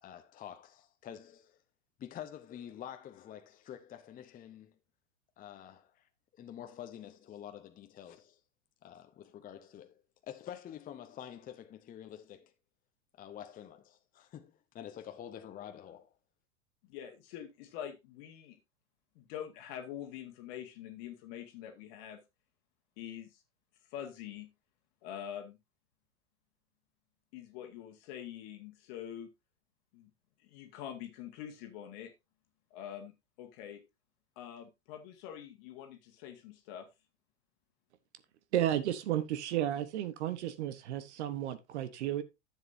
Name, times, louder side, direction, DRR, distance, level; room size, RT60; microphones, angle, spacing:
voice 1, 0.0-1.6 2.0-4.7 5.4-6.1 6.4-8.4 8.8-12.5 13.2-16.1, left 10 dB, 25° left, 0.8 m, -48 dB
voice 2, 16.9-18.6 19.1-22.2 23.0-23.4 23.9-24.5 25.0-25.6 27.3-29.3 29.9-30.1 30.4-32.1 32.7-33.1 33.4-33.8 34.3-36.9, left 10 dB, 50° left, 1.6 m, -45 dB
voice 3, 38.5-42.2, right 12 dB, 65° right, 1.1 m, -33 dB
11.0 x 7.4 x 2.6 m
hypercardioid pair, 105°, 36 cm